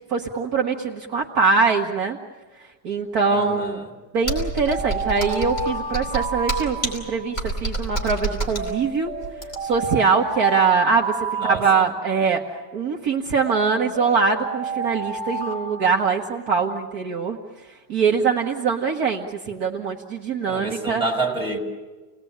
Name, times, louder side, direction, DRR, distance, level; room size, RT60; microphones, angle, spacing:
voice 1, 0.1-2.2 2.8-3.8 4.1-9.1 9.6-11.1 11.5-12.4 12.7-17.4 17.9-21.0, right 5 dB, 60° right, 0 dB, 1.8 m, -22 dB
voice 2, 3.3-3.9 11.3-11.9 20.5-21.6, right 3 dB, 20° right, 0 dB, 5.3 m, -28 dB
Computer keyboard, 4.2-9.9, right 1 dB, 25° left, 5.0 m, -28 dB
sound 1, 4.3-7.5 8.6-12.3 13.5-16.7, right 4 dB, 90° right, 2.0 m, -31 dB
30.0 x 20.0 x 8.7 m, 1.3 s
omnidirectional pair, 1.8 m